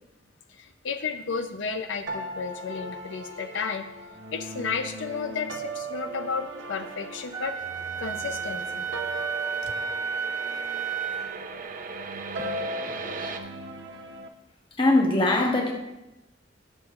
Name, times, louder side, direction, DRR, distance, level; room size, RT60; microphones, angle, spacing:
voice 1, 0.5-3.8 4.3-7.5 8.0-8.9 9.6-9.7, left 5 dB, 85° left, 7 dB, 0.5 m, -32 dB
sound 1, 2.1-14.3, right 2 dB, 75° right, 0.8 m, -39 dB
sound 2, 6.6-13.4, right 4 dB, 45° right, 0.6 m, -40 dB
Wind instrument woodwind instrument, 7.3-11.4, right 5 dB, 20° right, 0.9 m, -32 dB
voice 2, 12.9-13.4 14.8-15.7, left 2 dB, 25° left, 0 dB, 1.3 m, -23 dB
18.5 x 6.3 x 2.4 m, 0.98 s
head